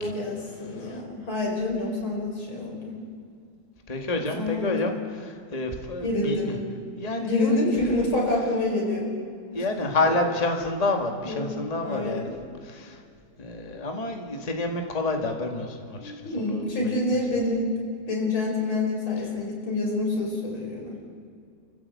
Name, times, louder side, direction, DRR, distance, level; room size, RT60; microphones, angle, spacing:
voice 1, 0.0-2.9 4.4-4.7 6.0-6.6 7.2-9.1 9.6-9.7 10.1-10.2 11.2-11.4 11.8-12.3 16.0-17.7 18.1-21.0, left 2 dB, 90° left, -1 dB, 6.1 m, -27 dB
voice 2, 3.9-6.6 7.0-7.8 9.5-12.3 12.6-13.0 13.4-17.0, left 2 dB, 20° left, 3 dB, 1.9 m, -29 dB
29.0 x 15.0 x 8.4 m, 2.3 s
omnidirectional pair, 2.2 m